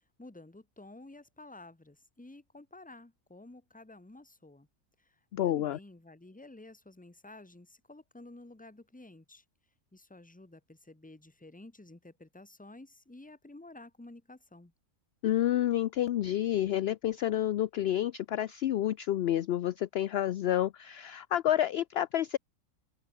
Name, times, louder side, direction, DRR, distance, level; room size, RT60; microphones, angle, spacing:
voice 1, 0.2-4.7 5.0-5.1 5.4-9.4 9.9-14.7, left 2 dB, 5° left, 1.1 m, -52 dB
voice 2, 5.3-5.8 15.2-22.4, left 12 dB, 65° left, 0.6 m, -29 dB
open air
omnidirectional pair, 1.5 m